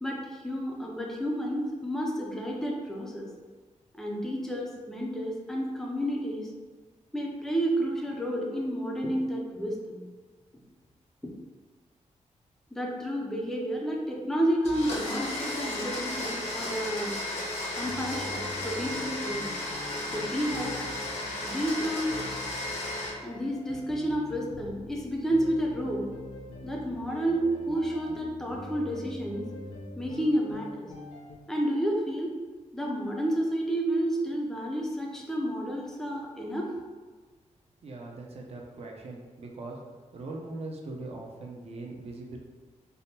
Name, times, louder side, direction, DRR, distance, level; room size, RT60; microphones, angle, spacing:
voice 1, 0.0-3.3 3.9-6.5 7.1-10.0 12.7-17.2 17.7-19.5 20.1-20.8 21.4-22.2 23.2-26.2 26.6-29.5 30.0-30.9 31.5-32.4 32.7-36.7, right 1 dB, 5° left, -1 dB, 0.4 m, -30 dB
Domestic sounds home sounds, 14.6-23.1, left 1 dB, 70° left, 1.0 m, -34 dB
sound 1, 17.8-31.4, left 2 dB, 50° left, 0.6 m, -44 dB
voice 2, 37.8-39.8 40.1-42.4, right 2 dB, 55° right, 0 dB, 0.5 m, -40 dB
3.4 x 2.1 x 2.7 m, 1.4 s
wide cardioid pair, 135°, 13 cm